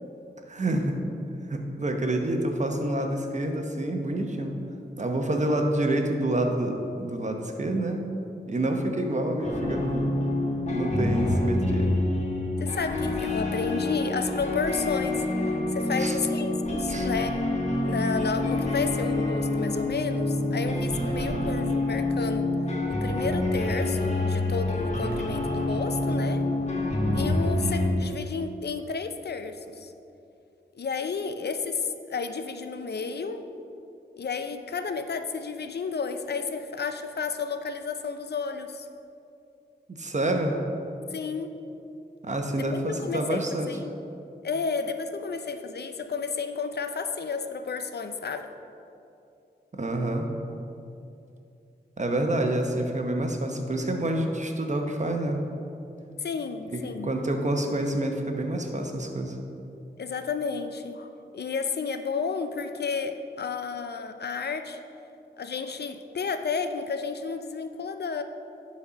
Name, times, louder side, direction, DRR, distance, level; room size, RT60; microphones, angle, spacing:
voice 1, 0.5-0.9 1.5-4.5 5.0-8.1 8.5-10.1 10.7-12.0 16.0-16.2 16.9-17.1 21.3-21.4 40.0-40.5 42.2-43.7 49.7-50.3 52.0-55.4 57.0-59.4, right 1 dB, 40° right, 3 dB, 1.0 m, -27 dB
sound 1, 9.4-27.9, left 2 dB, 40° left, 1.5 m, -27 dB
voice 2, 12.6-17.4 17.8-22.5 22.9-26.4 27.1-29.9 30.7-33.4 34.2-38.9 41.1-41.5 42.5-43.9 44.4-48.5 56.2-57.1 60.0-64.8 65.4-68.2, left 5 dB, 65° left, 8 dB, 0.5 m, -32 dB
11.0 x 4.3 x 5.1 m, 2.7 s
cardioid pair, 65°, 18 cm